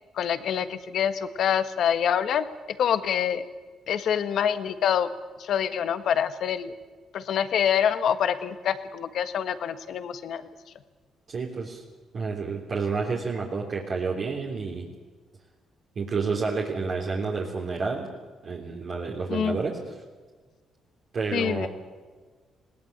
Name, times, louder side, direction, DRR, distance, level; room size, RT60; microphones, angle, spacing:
voice 1, 0.1-2.4 2.8-3.4 3.9-5.1 5.4-6.7 7.1-10.4 19.3-19.6 21.3-21.7, left 8 dB, 70° left, 11 dB, 1.5 m, -26 dB
voice 2, 11.3-11.8 12.1-14.9 16.0-18.1 18.4-20.0 21.1-21.7, right 4 dB, 50° right, -2 dB, 3.4 m, -29 dB
21.0 x 18.0 x 8.8 m, 1.4 s
cardioid pair, 90°, 0 cm